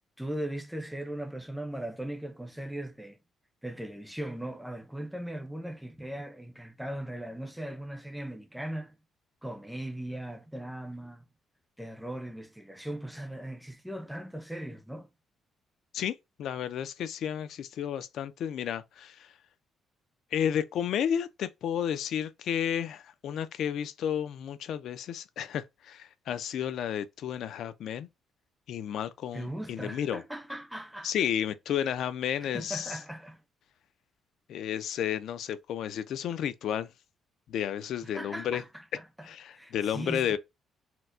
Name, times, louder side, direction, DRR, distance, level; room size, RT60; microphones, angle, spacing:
voice 1, 0.2-3.2 3.6-8.9 9.4-11.3 11.8-15.1 29.3-31.1 32.4-33.4 38.0-39.3 39.5-40.4, right 1 dB, ahead, 0.5 m, -38 dB
voice 2, 15.9-19.3 20.3-28.1 28.7-30.2 31.0-33.0 34.5-36.9 37.5-38.6 39.2-40.4, left 9 dB, 60° left, 0.3 m, -32 dB
4.3 x 2.0 x 2.5 m
cardioid pair, 180°, 0 cm